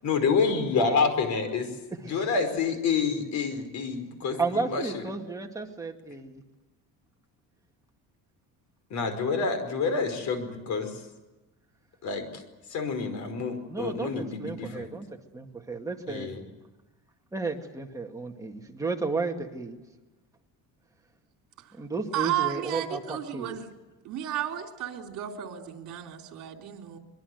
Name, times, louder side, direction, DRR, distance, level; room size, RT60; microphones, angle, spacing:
voice 1, 0.0-1.7 2.0-5.0 8.9-11.0 12.0-12.4 12.7-14.9 16.1-16.4, left 5 dB, 50° left, 8 dB, 5.1 m, -28 dB
voice 2, 1.9-2.3 2.7-2.8 4.4-6.4 13.7-16.3 17.3-19.8 21.8-23.6, right 3 dB, 10° right, 2 dB, 2.1 m, -33 dB
voice 3, 22.1-23.7 24.0-27.0, right 12 dB, 55° right, 3 dB, 3.5 m, -33 dB
24.0 x 23.0 x 8.0 m, 1.1 s
cardioid pair, 170°, 35 cm